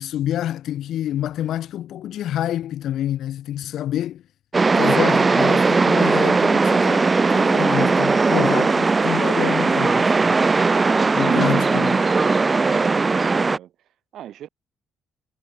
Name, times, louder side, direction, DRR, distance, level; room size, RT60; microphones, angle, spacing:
voice 1, 0.0-4.2 4.8-10.4 11.1-12.0, left 12 dB, 55° left, 5.4 m, -27 dB
sound 1, 4.5-13.6, right 4 dB, 20° right, 1.2 m, -18 dB
voice 2, 8.1-8.5 11.1-12.0 14.1-14.5, right 11 dB, 55° right, 4.8 m, -35 dB
cardioid pair, 165°, 0 cm